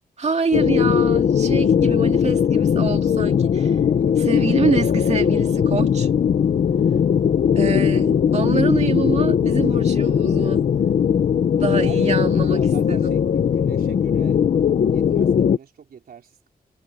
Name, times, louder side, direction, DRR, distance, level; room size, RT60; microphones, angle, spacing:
voice 1, 0.2-3.8 4.2-6.1 7.6-10.6 11.5-12.6 12.9-13.1, right 5 dB, 45° right, 2.3 m, -26 dB
sound 1, 0.5-15.6, left 8 dB, 65° left, 0.9 m, -19 dB
voice 2, 11.7-14.4 14.9-16.5, right 7 dB, 75° right, 4.3 m, -42 dB
wide cardioid pair, 170°, 16 cm